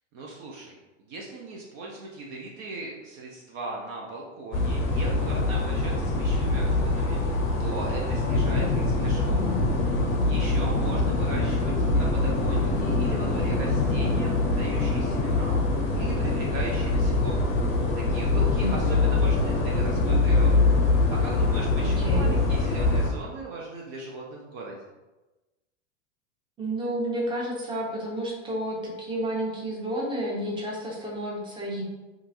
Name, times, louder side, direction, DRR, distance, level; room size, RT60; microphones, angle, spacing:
voice 1, 0.1-0.8 1.1-9.4 10.2-15.6 15.9-17.5 17.9-20.7 21.1-24.8, right 2 dB, 45° right, -2 dB, 0.6 m, -38 dB
sound 1, 4.5-23.1, left 3 dB, 35° left, 0.6 m, -24 dB
voice 2, 18.6-18.9 21.8-22.4 26.6-31.8, right 1 dB, 15° right, -3 dB, 0.8 m, -31 dB
2.9 x 2.4 x 2.6 m, 1.1 s
hypercardioid pair, 105°, 37 cm